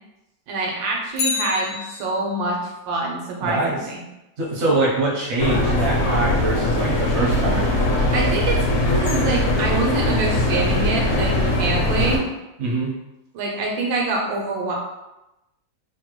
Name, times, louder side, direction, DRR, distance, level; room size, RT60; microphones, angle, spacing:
voice 1, 0.5-2.6 2.9-4.0 8.1-12.2 13.3-14.7, right 2 dB, 85° right, -1 dB, 1.4 m, -25 dB
Bicycle, 1.1-2.5 10.8-10.9, left 6 dB, 80° left, 0.6 m, -28 dB
voice 2, 3.4-3.8 4.4-7.7 12.6-13.0, right 2 dB, 60° right, -4 dB, 0.7 m, -23 dB
sound 1, 5.4-12.2, left 1 dB, 65° left, 1.0 m, -21 dB
3.3 x 2.1 x 2.9 m, 0.94 s
omnidirectional pair, 2.0 m